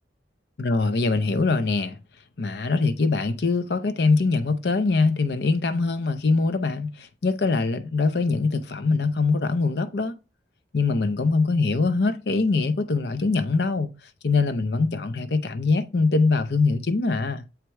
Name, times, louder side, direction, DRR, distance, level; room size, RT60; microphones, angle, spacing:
voice 1, 0.6-2.0 2.4-10.1 10.7-13.9 14.2-17.4, left 3 dB, 65° left, 0.6 m, -23 dB
7.4 x 4.7 x 3.3 m
head